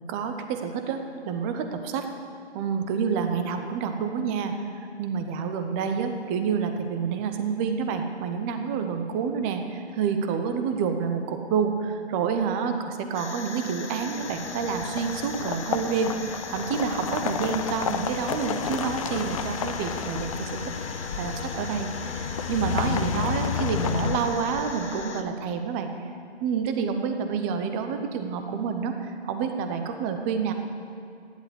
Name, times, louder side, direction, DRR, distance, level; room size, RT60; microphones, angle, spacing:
voice 1, 0.1-2.1 2.5-4.5 5.0-20.7 21.2-25.9 26.4-30.5, right 6 dB, 10° right, 6 dB, 0.6 m, -28 dB
sound 1, 13.1-25.2, left 4 dB, 85° left, 1.7 m, -38 dB
sound 2, 14.2-25.0, left 7 dB, 30° left, 0.7 m, -31 dB
15.5 x 11.0 x 8.4 m, 2.4 s
hypercardioid pair, 145°, 34 cm